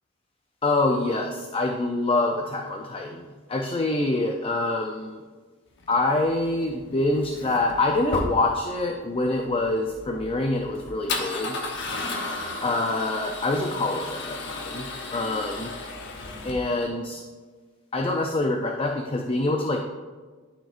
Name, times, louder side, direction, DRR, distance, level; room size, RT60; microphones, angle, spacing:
voice 1, 0.6-5.2 5.9-11.6 12.6-15.7 16.4-17.2 17.9-19.8, left 2 dB, 25° left, 1 dB, 0.5 m, -25 dB
Male speech man speaking / Car / Engine starting, 5.8-16.9, left 2 dB, 60° left, 1.0 m, -35 dB
12.0 x 5.1 x 2.5 m, 1.4 s
head